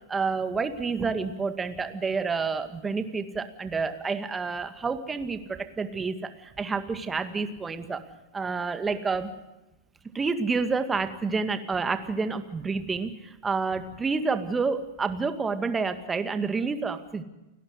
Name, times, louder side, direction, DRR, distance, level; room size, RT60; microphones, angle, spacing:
voice 1, 0.1-8.0 8.3-9.3 10.1-17.2, right 4 dB, 15° right, 9 dB, 2.0 m, -29 dB
30.0 x 12.0 x 8.0 m, 0.95 s
figure-of-eight pair, 95°, 0 cm